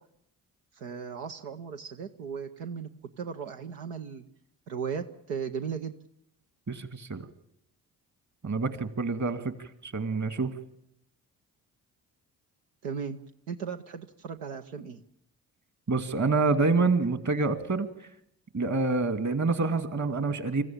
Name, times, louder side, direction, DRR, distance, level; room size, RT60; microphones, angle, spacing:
voice 1, 0.7-2.9 3.2-4.2 4.7-6.0 12.8-13.2 13.5-15.0, right 6 dB, 90° right, 5 dB, 0.9 m, -36 dB
voice 2, 6.7-7.3 8.4-10.5 15.9-17.9 18.5-20.6, right 3 dB, 40° right, 10 dB, 2.3 m, -27 dB
25.0 x 15.0 x 8.8 m, 0.79 s
hypercardioid pair, 45°, 42 cm